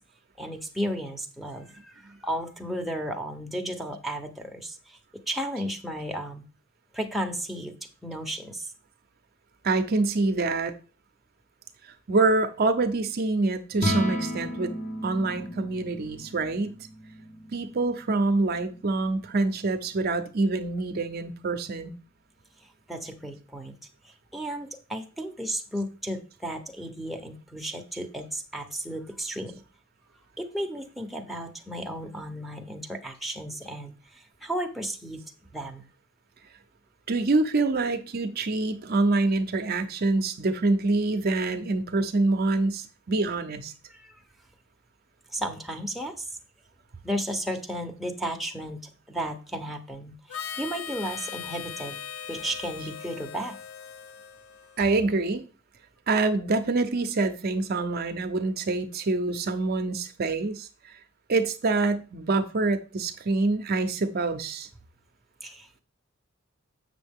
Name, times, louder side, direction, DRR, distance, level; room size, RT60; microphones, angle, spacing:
voice 1, 0.4-5.0 5.3-6.4 6.9-8.7 22.9-23.8 24.3-29.6 30.4-35.2 35.5-35.9 43.9-44.1 45.3-46.3 47.0-48.8 49.1-52.0 52.3-53.6 65.4-65.8, right 1 dB, ahead, 0.8 m, -34 dB
voice 2, 9.6-10.7 11.8-14.7 15.0-16.8 17.5-22.0 37.1-43.7 54.8-55.4 56.1-60.7 61.3-64.7, right 3 dB, 50° right, 0.6 m, -26 dB
sound 1, 13.7-20.1, equal, 35° left, 1.0 m, -34 dB
Harmonica, 50.3-55.0, left 7 dB, 75° left, 0.6 m, -39 dB
7.5 x 6.3 x 3.5 m
head